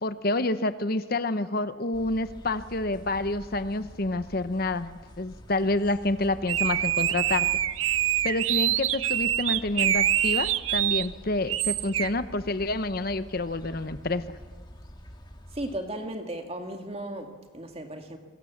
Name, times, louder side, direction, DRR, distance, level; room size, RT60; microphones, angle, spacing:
voice 1, 0.0-7.5 8.2-14.2, left 2 dB, 45° left, 0.9 m, -28 dB
sound 1, 1.9-15.8, equal, 20° left, 2.0 m, -47 dB
sound 2, 6.5-11.1 11.5-12.1, right 12 dB, 75° right, 0.7 m, -25 dB
voice 2, 15.5-18.2, right 1 dB, 30° right, 2.2 m, -35 dB
27.0 x 22.5 x 7.2 m
head